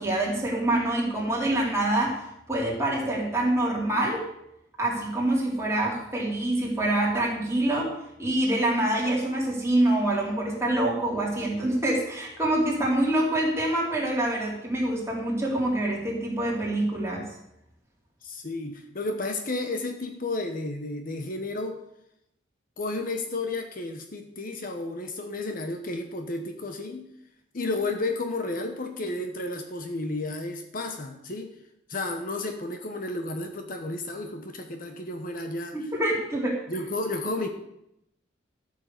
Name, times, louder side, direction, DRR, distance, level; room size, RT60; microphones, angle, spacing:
voice 1, 0.0-4.3 4.8-7.9 8.2-17.3 35.7-36.6, right 1 dB, 15° right, -4 dB, 3.7 m, -26 dB
voice 2, 18.2-21.8 22.8-27.1 27.5-31.5 31.9-35.7 36.7-37.5, left 2 dB, 50° left, 5 dB, 1.2 m, -32 dB
13.0 x 7.0 x 6.8 m, 0.79 s
head